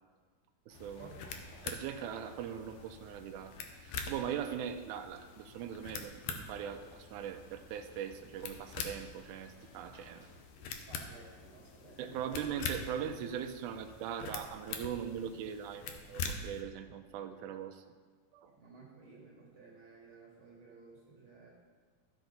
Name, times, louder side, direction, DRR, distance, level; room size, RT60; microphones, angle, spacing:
sound 1, 0.7-16.6, left 5 dB, 85° left, 1.5 m, -45 dB
sound 2, 0.7-10.4, left 1 dB, 45° left, 2.4 m, -61 dB
voice 1, 0.7-1.1 1.6-3.5 3.8-10.3 12.0-17.8 18.3-18.5, right 8 dB, 80° right, 6 dB, 1.9 m, -40 dB
voice 2, 10.6-12.6 18.5-21.5, right 3 dB, 50° right, -4 dB, 2.0 m, -55 dB
14.5 x 6.0 x 4.0 m, 1.5 s
omnidirectional pair, 4.1 m